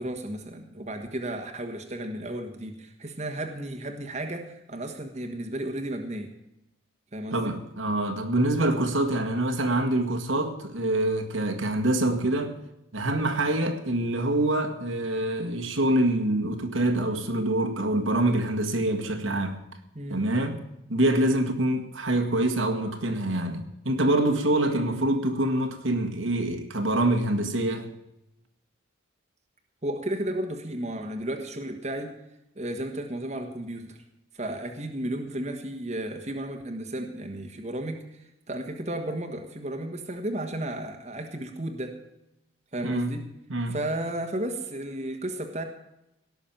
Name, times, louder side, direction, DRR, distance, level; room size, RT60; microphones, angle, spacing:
voice 1, 0.0-6.3 7.1-7.5 19.9-20.2 24.7-25.1 29.8-32.1 32.5-34.0 34.3-41.9 42.7-43.2 43.7-45.6, right 1 dB, 35° right, 1.5 m, -33 dB
voice 2, 7.3-12.6 12.9-19.6 20.1-20.6 20.9-27.9 42.8-43.2 43.5-43.8, right 1 dB, 75° right, 1.9 m, -25 dB
17.5 x 6.5 x 9.0 m
head